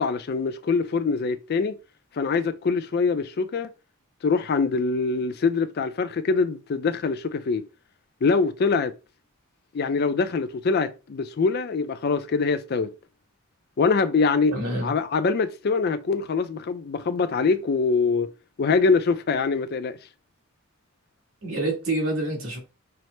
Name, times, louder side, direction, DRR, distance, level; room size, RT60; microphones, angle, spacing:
voice 1, 0.0-1.8 2.2-3.7 4.2-7.6 8.2-8.9 9.7-12.9 13.8-14.5 14.8-18.3 18.6-20.0, left 4 dB, 45° left, 0.4 m, -24 dB
voice 2, 14.5-14.9 21.4-22.6, right 1 dB, 60° right, 1.5 m, -27 dB
5.6 x 2.0 x 3.1 m
head